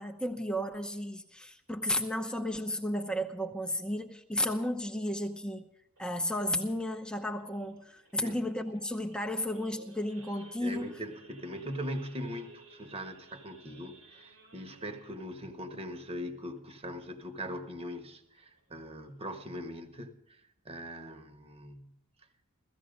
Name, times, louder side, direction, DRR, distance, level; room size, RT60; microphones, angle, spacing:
voice 1, 0.0-5.7 6.0-10.9, left 1 dB, 5° left, 4 dB, 0.8 m, -33 dB
Idling / Accelerating revving vroom / Sawing, 6.0-17.0 17.4-17.6 17.9-18.0 18.5-18.7 19.2-19.3 19.5-19.9, right 2 dB, 85° right, 5.5 m, -57 dB
voice 2, 10.6-21.9, equal, 25° right, 6 dB, 1.3 m, -41 dB
17.0 x 15.0 x 5.3 m, 0.76 s
head